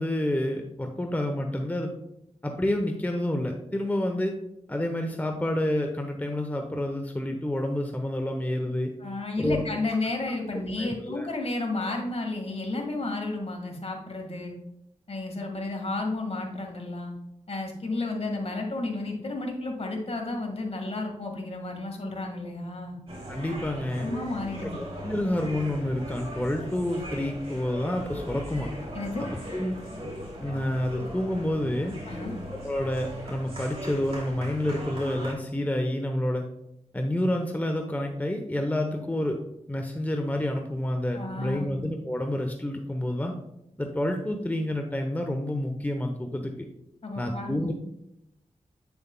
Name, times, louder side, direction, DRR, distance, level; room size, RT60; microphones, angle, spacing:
voice 1, 0.0-1.9 2.4-4.3 4.7-8.9 9.4-9.6 10.8-11.3 23.3-24.1 24.6-28.7 29.5-30.1 30.4-31.9 32.6-36.4 36.9-39.4 39.7-43.3 43.8-46.5 47.2-47.7, left 1 dB, 15° left, 3 dB, 0.8 m, -29 dB
voice 2, 9.0-14.5 15.1-17.1 17.5-23.0 24.0-24.8 28.9-29.2 32.1-32.3 41.1-41.7 47.0-47.7, left 2 dB, 55° left, 2 dB, 1.7 m, -32 dB
sound 1, 23.1-35.3, equal, 50° right, 2.7 m, -39 dB
8.3 x 6.9 x 2.2 m, 0.81 s
cardioid pair, 60°, 13 cm